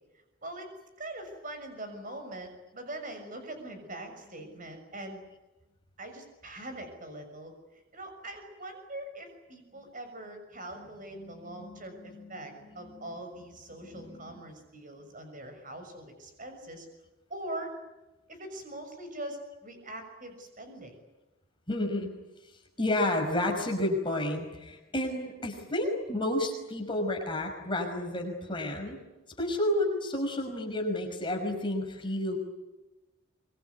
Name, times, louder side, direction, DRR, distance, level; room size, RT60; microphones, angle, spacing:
voice 1, 1.0-5.2 6.0-16.9 17.3-17.7 18.3-20.9, right 1 dB, 40° right, 6 dB, 6.5 m, -42 dB
voice 2, 11.2-12.4 12.8-13.0 13.9-14.4 21.7-22.1 22.8-29.0 29.4-32.4, left 1 dB, 25° left, 2 dB, 5.4 m, -31 dB
25.0 x 24.0 x 9.5 m, 1.1 s
head